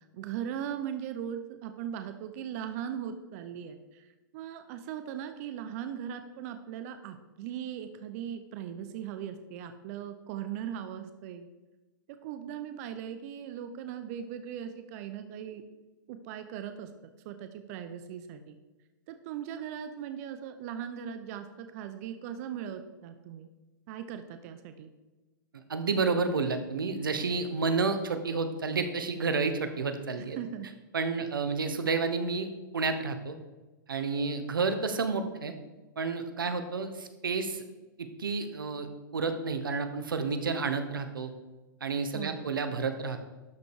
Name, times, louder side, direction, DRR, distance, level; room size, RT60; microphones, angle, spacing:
voice 1, 0.1-4.1 4.3-11.5 12.2-15.6 16.1-16.9 17.2-18.5 19.1-23.5 23.9-24.9 30.2-30.7 42.1-42.5, right 9 dB, 45° right, 9 dB, 0.8 m, -39 dB
voice 2, 25.5-30.4 30.9-32.5 32.7-33.4 33.9-35.5 36.0-37.6 38.0-38.9 39.1-41.3 41.8-43.2, right 4 dB, 85° right, 8 dB, 1.1 m, -30 dB
12.5 x 5.2 x 4.7 m, 1.1 s
hypercardioid pair, 120°, 11 cm